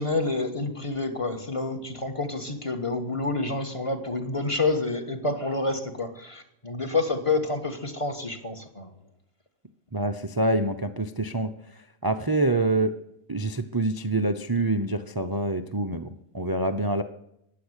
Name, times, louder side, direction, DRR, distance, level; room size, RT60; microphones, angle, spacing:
voice 1, 0.0-8.9, left 3 dB, 20° left, 6 dB, 1.6 m, -28 dB
voice 2, 9.9-13.0 13.3-17.0, right 2 dB, 30° right, 9 dB, 0.4 m, -26 dB
15.5 x 10.5 x 8.2 m, 0.79 s
omnidirectional pair, 1.6 m